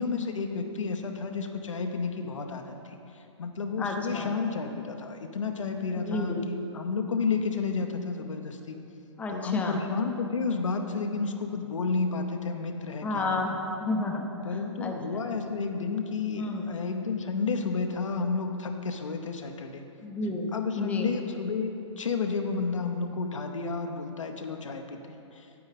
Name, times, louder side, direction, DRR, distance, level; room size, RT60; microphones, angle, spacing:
voice 1, 0.0-3.0 3.4-8.8 9.3-13.7 14.4-19.9 20.5-25.5, left 4 dB, 90° left, 4 dB, 0.9 m, -31 dB
voice 2, 3.8-4.3 6.0-6.4 9.2-9.8 13.0-14.2 14.8-15.3 16.4-16.7 20.0-20.5 20.8-21.1, left 2 dB, 10° left, 1 dB, 0.7 m, -31 dB
8.8 x 8.6 x 4.1 m, 2.9 s
hypercardioid pair, 140°, 16 cm